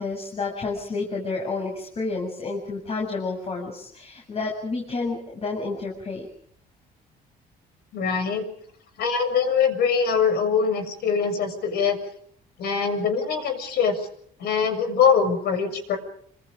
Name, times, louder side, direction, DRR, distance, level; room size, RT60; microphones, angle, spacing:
voice 1, 0.0-6.3, left 3 dB, 35° left, 0 dB, 7.5 m, -30 dB
voice 2, 7.9-8.5 9.0-12.0 12.6-14.1 14.4-16.0, left 6 dB, 70° left, 8 dB, 7.1 m, -23 dB
28.5 x 26.5 x 5.2 m, 0.64 s
cardioid pair, 110°, 17 cm